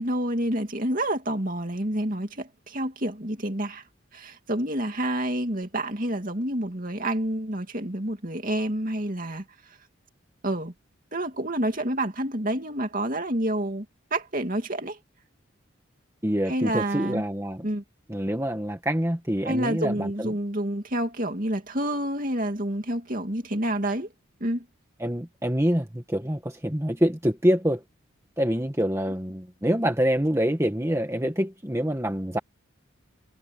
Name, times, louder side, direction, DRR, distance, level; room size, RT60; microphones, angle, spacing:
voice 1, 0.0-3.8 4.1-9.4 10.4-10.7 11.1-13.9 14.1-15.0 16.5-17.2 17.6-17.8 19.4-24.1 24.4-24.6, right 1 dB, 40° right, 2.7 m, -28 dB
voice 2, 16.2-17.7 18.1-20.3 25.0-27.8 28.4-32.4, equal, 15° right, 1.6 m, -26 dB
head